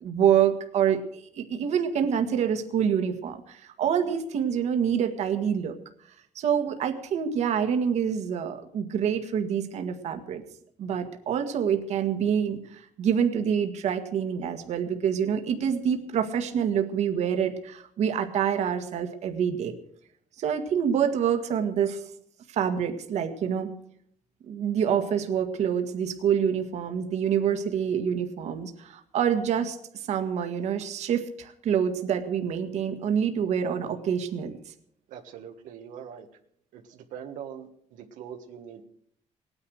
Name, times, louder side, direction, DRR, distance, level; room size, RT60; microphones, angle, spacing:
voice 1, 0.0-5.8 6.4-10.4 10.8-19.8 20.4-22.0 22.5-23.7 24.5-34.6, right 8 dB, 60° right, 6 dB, 1.7 m, -26 dB
voice 2, 35.1-36.3 36.7-38.8, right 8 dB, 85° right, 4 dB, 1.5 m, -42 dB
19.0 x 9.8 x 6.4 m, 0.67 s
cardioid pair, 145°, 13 cm